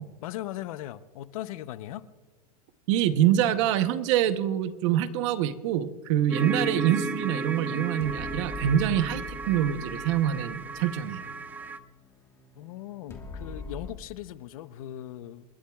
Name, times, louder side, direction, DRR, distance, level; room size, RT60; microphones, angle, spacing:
voice 1, 0.2-2.0 12.6-15.4, left 13 dB, 65° left, 0.8 m, -38 dB
voice 2, 2.9-11.2, right 10 dB, 50° right, 0.9 m, -25 dB
sound 1, 6.3-11.8, right 3 dB, 10° right, 0.4 m, -34 dB
sound 2, 8.0-13.9, left 3 dB, 15° left, 1.4 m, -43 dB
28.5 x 11.5 x 2.4 m
supercardioid pair, 160°, 19 cm